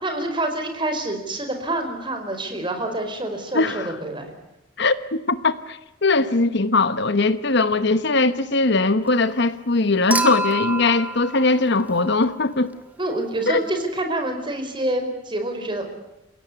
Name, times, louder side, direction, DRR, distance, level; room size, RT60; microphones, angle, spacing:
voice 1, 0.0-4.3 13.0-15.9, right 1 dB, 25° right, 4.7 m, -27 dB
voice 2, 3.5-3.9 4.8-12.7 13.5-13.6, left 3 dB, 60° left, 1.2 m, -20 dB
Human group actions / Chink clink / Liquid, 10.1-12.5 14.0-14.1, right 1 dB, 10° right, 1.6 m, -28 dB
29.5 x 17.0 x 9.7 m
head